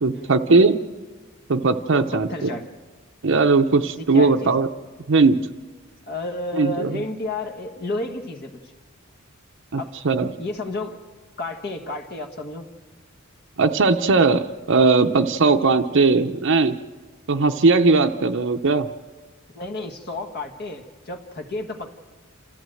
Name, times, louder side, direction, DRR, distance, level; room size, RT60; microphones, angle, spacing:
voice 1, 0.0-0.8 1.5-2.5 3.2-4.7 5.1-5.4 6.5-7.0 9.7-10.3 13.6-16.8 17.3-18.9, right 3 dB, 60° right, 6 dB, 0.7 m, -18 dB
voice 2, 1.9-2.6 4.0-4.5 6.1-8.7 9.7-10.0 10.4-11.0 11.4-12.7 19.5-21.9, left 2 dB, 50° left, 4 dB, 1.6 m, -31 dB
28.5 x 14.0 x 7.8 m, 1.4 s
head